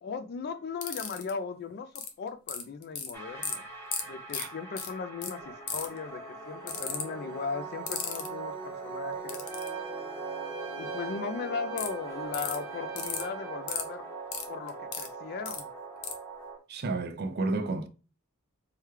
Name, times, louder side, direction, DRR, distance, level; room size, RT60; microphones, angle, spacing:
voice 1, 0.0-3.7 4.0-9.4 10.8-14.1 14.5-15.7, left 5 dB, 45° left, 0.3 m, -37 dB
sound 1, 0.8-1.3 2.0-2.1 2.5-3.1 3.4-3.6 3.9-4.0 4.3-4.4 4.8-4.9 5.2-5.3 5.7-6.0 6.7-7.0 7.9-8.3 9.3-9.7 11.8-11.9 12.3-12.6 13.0-13.2 13.7-13.8 14.3-15.1 15.5-15.6 16.0-16.1, left 7 dB, 70° left, 0.7 m, -33 dB
sound 2, 3.1-16.6, right 4 dB, 10° left, 0.8 m, -40 dB
Trumpet, 9.4-13.7, right 4 dB, 15° right, 1.2 m, -47 dB
voice 2, 16.7-17.9, right 3 dB, 45° right, 0.5 m, -31 dB
4.6 x 2.2 x 3.2 m
head